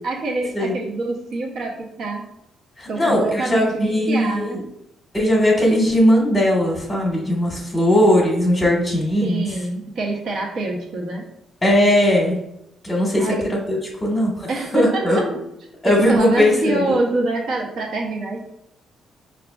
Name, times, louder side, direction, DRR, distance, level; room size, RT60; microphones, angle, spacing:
voice 1, 0.0-2.2 2.9-4.7 9.2-11.2 13.2-13.4 14.5-15.3 15.8-18.5, right 2 dB, 65° right, 0 dB, 0.7 m, -26 dB
voice 2, 2.8-4.6 5.1-9.4 11.6-12.4 12.8-15.3 15.8-17.0, left 1 dB, 15° left, -3 dB, 0.9 m, -19 dB
4.9 x 2.3 x 2.3 m, 0.82 s
cardioid pair, 90°, 0 cm